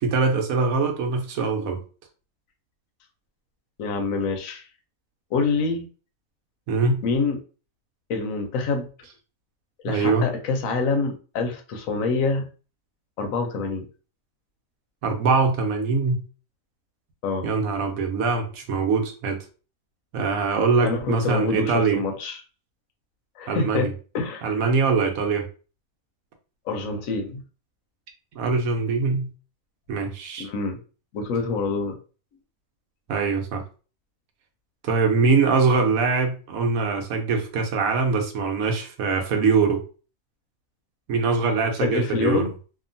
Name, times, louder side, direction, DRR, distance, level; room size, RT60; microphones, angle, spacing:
voice 1, 0.0-1.8 6.7-7.0 9.8-10.3 15.0-16.2 17.4-19.4 20.1-22.0 23.5-23.9 24.4-25.5 28.3-29.3 29.9-30.5 33.1-33.6 34.8-39.8 41.1-42.4, right 4 dB, 80° right, 3 dB, 1.1 m, -23 dB
voice 2, 3.8-4.6 5.3-5.9 7.0-7.4 8.1-8.9 9.8-12.5 13.2-13.8 17.2-17.5 20.8-22.4 23.4-24.5 26.7-27.4 30.4-30.8 31.1-32.0 41.8-42.5, left 4 dB, 75° left, 4 dB, 1.0 m, -26 dB
2.8 x 2.4 x 2.6 m, 0.36 s
omnidirectional pair, 1.4 m